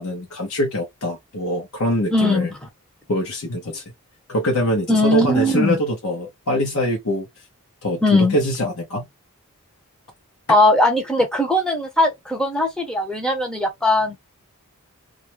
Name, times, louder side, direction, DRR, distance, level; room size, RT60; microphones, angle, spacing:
voice 1, 0.0-2.5 3.1-3.8 4.3-7.3 7.8-9.1, equal, 70° left, 0.8 m, -23 dB
voice 2, 2.1-2.6 4.9-5.8 8.0-8.4 10.5-14.2, left 1 dB, 5° left, 0.6 m, -19 dB
2.4 x 2.1 x 2.9 m
head